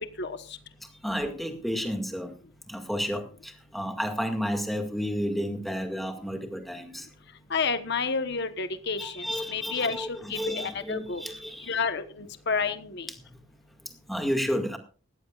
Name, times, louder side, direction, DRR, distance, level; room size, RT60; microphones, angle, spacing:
voice 1, 1.0-2.3 2.7-7.1 9.0-11.8 13.3-13.4 14.1-14.8, equal, ahead, 4 dB, 2.0 m, -31 dB
voice 2, 7.5-11.2 11.7-13.1, left 5 dB, 55° left, 10 dB, 1.2 m, -30 dB
19.0 x 15.0 x 2.5 m, 0.38 s
head